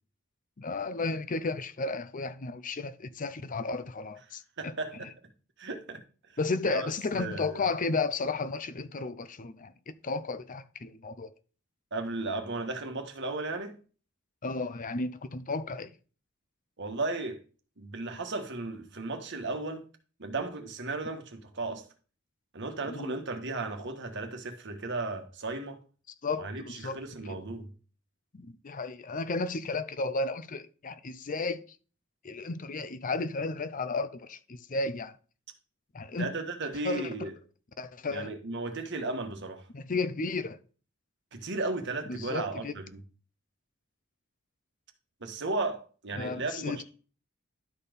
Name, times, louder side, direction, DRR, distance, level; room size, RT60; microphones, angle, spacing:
voice 1, 0.6-4.7 6.4-11.3 14.4-15.9 22.9-23.1 26.2-27.0 27.3-27.4 28.3-31.6 32.2-35.2 35.9-36.3 36.8-37.3 37.8-38.3 39.7-40.6 42.1-42.7 46.2-46.8, left 3 dB, 40° left, 0.6 m, -33 dB
voice 2, 4.6-5.1 5.6-6.0 6.6-7.6 11.9-13.8 16.8-17.4 17.8-19.8 20.2-21.9 22.5-25.8 26.4-27.7 36.2-37.4 38.1-39.6 41.3-43.0 45.2-46.8, right 2 dB, 60° right, 1.5 m, -35 dB
11.5 x 4.3 x 5.1 m
head